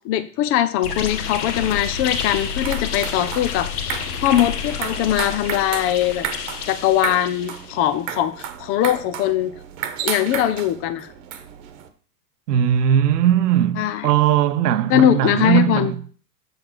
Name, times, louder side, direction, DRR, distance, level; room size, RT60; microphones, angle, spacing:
voice 1, 0.0-6.3 6.7-9.5 10.0-11.1 13.8-14.1 14.9-15.9, left 11 dB, 30° left, 0.7 m, -21 dB
sound 1, 0.8-7.9, left 7 dB, 65° left, 1.4 m, -29 dB
sound 2, 2.4-11.9, right 9 dB, 50° right, 1.3 m, -33 dB
voice 2, 12.5-16.0, right 10 dB, 70° right, 0.9 m, -19 dB
7.5 x 5.2 x 6.0 m
hypercardioid pair, 120°, 49 cm